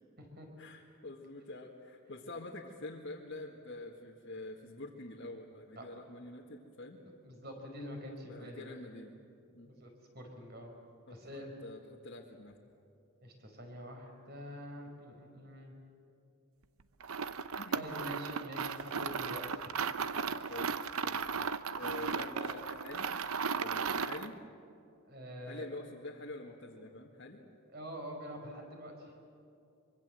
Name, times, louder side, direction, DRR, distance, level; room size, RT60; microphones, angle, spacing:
voice 1, 0.6-7.0 8.2-9.2 9.6-9.7 11.1-12.6 17.5-17.9 20.5-23.1 23.6-24.4 25.5-27.4, left 2 dB, 55° left, -3 dB, 1.8 m, -46 dB
voice 2, 5.8-6.1 7.2-8.8 9.6-10.7 11.1-11.5 13.2-15.7 17.7-19.8 25.1-25.7 27.7-29.1, equal, 45° right, 2 dB, 5.0 m, -46 dB
sound 1, 17.0-24.3, right 5 dB, 75° right, 0.8 m, -36 dB
24.5 x 24.0 x 7.8 m, 2.6 s
head